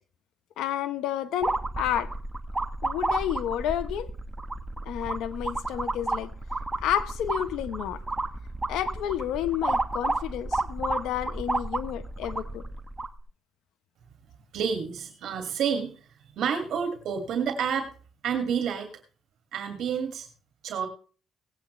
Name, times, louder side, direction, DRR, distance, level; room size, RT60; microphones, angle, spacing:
voice 1, 0.6-2.1 2.8-4.1 4.8-6.3 6.8-8.0 8.7-12.6, left 11 dB, 85° left, 12 dB, 1.2 m, -30 dB
sound 1, 1.4-13.2, right 2 dB, 15° right, 1.5 m, -31 dB
voice 2, 14.5-16.0 16.4-17.9 18.2-18.9 19.5-20.3 20.6-20.9, right 7 dB, 75° right, 6 dB, 2.3 m, -29 dB
18.0 x 8.7 x 3.3 m, 0.38 s
cardioid pair, 90°, 0 cm